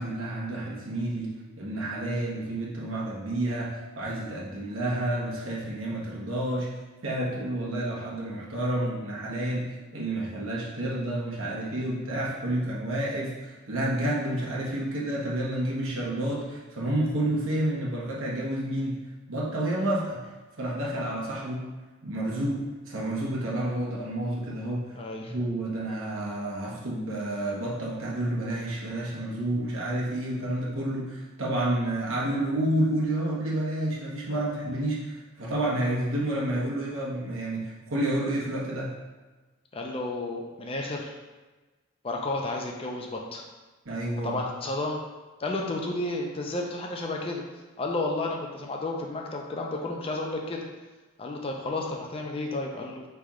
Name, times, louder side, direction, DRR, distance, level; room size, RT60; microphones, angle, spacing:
voice 1, 0.0-6.7 7.0-19.0 19.3-20.2 20.6-21.7 22.0-24.9 25.2-38.9 43.8-44.4, right 1 dB, 80° right, -4 dB, 1.1 m, -30 dB
voice 2, 25.0-25.3 39.7-41.1 42.0-43.4 44.2-45.0 45.4-47.4 47.8-50.7 51.2-53.1, left 2 dB, 25° left, 1 dB, 0.4 m, -32 dB
4.2 x 3.4 x 3.6 m, 1.2 s
head